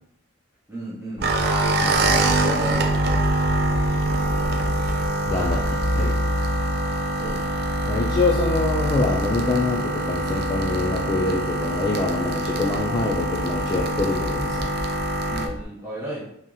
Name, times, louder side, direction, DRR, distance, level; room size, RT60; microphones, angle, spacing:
voice 1, 0.7-1.3 7.1-7.5 15.3-16.2, right 1 dB, 15° right, -8 dB, 0.7 m, -34 dB
sound 1, 1.2-15.6, equal, 70° left, 1.1 m, -30 dB
sound 2, 1.2-15.5, right 2 dB, 50° right, 0.4 m, -25 dB
voice 2, 1.8-2.8 5.3-5.6 6.0-6.3 7.9-14.7, left 3 dB, 25° left, -3 dB, 0.3 m, -25 dB
3.0 x 2.8 x 3.7 m, 0.72 s
head